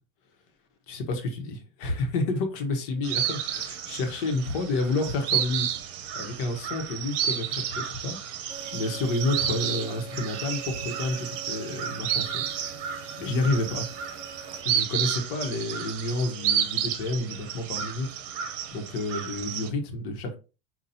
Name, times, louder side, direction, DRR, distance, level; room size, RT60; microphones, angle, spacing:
voice 1, 0.9-12.5 12.9-13.9 14.6-18.1 18.7-20.4, left 2 dB, 65° left, 1.0 m, -30 dB
sound 1, 3.0-19.7, right 9 dB, 65° right, 0.8 m, -31 dB
sound 2, 8.5-14.6, right 5 dB, 15° right, 0.5 m, -44 dB
5.4 x 2.4 x 2.7 m
supercardioid pair, 145°, 29 cm